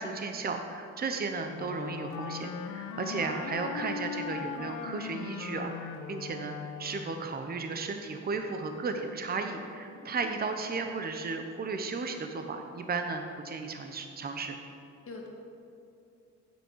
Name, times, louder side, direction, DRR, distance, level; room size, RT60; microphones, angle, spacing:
voice 1, 0.0-14.5, right 4 dB, 30° right, 5 dB, 0.8 m, -34 dB
Wind instrument woodwind instrument, 1.5-7.3, left 6 dB, 80° left, 0.8 m, -39 dB
voice 2, 3.1-3.2 9.9-10.2 15.1-15.3, left 3 dB, 45° left, 1 dB, 1.8 m, -45 dB
10.5 x 8.2 x 4.6 m, 2.7 s
cardioid pair, 90°, 30 cm